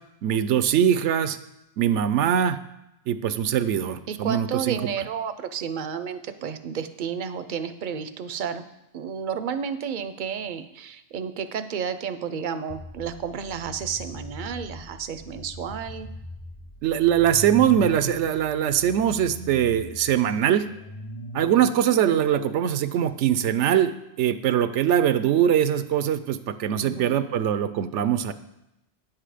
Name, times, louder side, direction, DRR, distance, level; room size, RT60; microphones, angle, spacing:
voice 1, 0.2-1.4 1.8-2.6 3.1-4.9 16.8-20.7 21.3-28.3, right 10 dB, 80° right, 12 dB, 0.9 m, -22 dB
voice 2, 4.1-8.7 8.9-16.1 26.7-27.2, right 7 dB, 50° right, 11 dB, 0.7 m, -31 dB
sound 1, 12.7-23.1, left 1 dB, 35° left, 0.6 m, -40 dB
9.6 x 7.5 x 4.9 m, 0.87 s
omnidirectional pair, 1.2 m